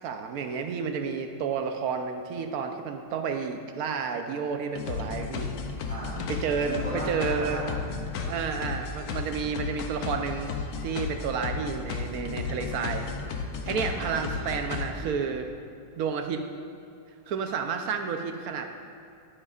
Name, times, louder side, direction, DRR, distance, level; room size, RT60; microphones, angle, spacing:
voice 1, 0.0-5.5 6.3-7.6 8.3-10.5 10.8-15.5 16.0-16.4 17.3-18.7, right 6 dB, 65° right, 6 dB, 1.0 m, -31 dB
sound 1, 4.7-14.9, left 5 dB, 65° left, 1.1 m, -34 dB
voice 2, 5.9-6.3 6.6-8.4 13.8-13.9, equal, 25° left, -4 dB, 0.8 m, -36 dB
11.0 x 9.7 x 2.4 m, 2.6 s
omnidirectional pair, 2.0 m